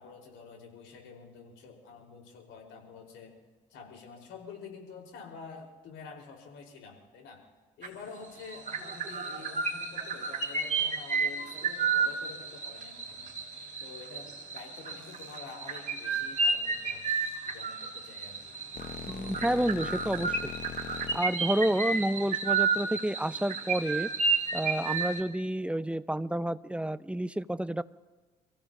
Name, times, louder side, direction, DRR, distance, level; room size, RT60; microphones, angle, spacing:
voice 1, 0.0-3.4 3.7-7.4 7.8-13.3 13.8-17.1 17.4-18.6, left 5 dB, 75° left, 2 dB, 4.4 m, -48 dB
sound 1, 7.8-8.1 8.4-25.2, right 5 dB, 40° right, 3.2 m, -32 dB
sound 2, 15.0-15.4 17.1-17.4 18.2-21.2, left 7 dB, 45° left, 1.2 m, -42 dB
voice 2, 19.1-20.4 21.1-24.1 24.5-27.8, right 1 dB, 5° right, 15 dB, 0.7 m, -30 dB
29.5 x 15.5 x 2.8 m, 1.3 s
hypercardioid pair, 50°, 20 cm